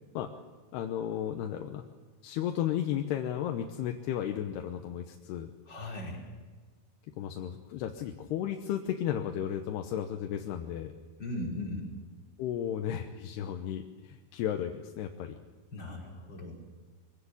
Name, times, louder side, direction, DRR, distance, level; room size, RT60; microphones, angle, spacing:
voice 1, 0.7-1.8 2.2-5.5 7.2-10.9 12.4-15.4, left 10 dB, 85° left, 4 dB, 3.1 m, -34 dB
voice 2, 5.7-6.2 11.2-11.9 15.7-16.5, left 1 dB, 25° left, -3 dB, 6.2 m, -38 dB
23.5 x 16.5 x 9.8 m, 1.4 s
omnidirectional pair, 4.7 m